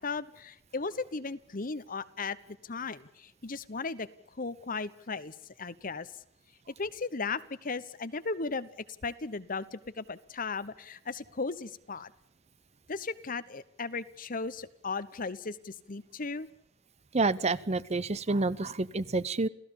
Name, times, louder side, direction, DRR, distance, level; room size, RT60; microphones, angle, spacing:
voice 1, 0.0-2.4 2.6-4.1 4.3-6.1 6.8-8.7 9.0-12.1 12.9-16.5, left 4 dB, 50° left, 14 dB, 1.1 m, -36 dB
voice 2, 17.1-19.5, right 3 dB, 35° right, 17 dB, 0.8 m, -28 dB
28.5 x 16.5 x 7.2 m, 0.72 s
head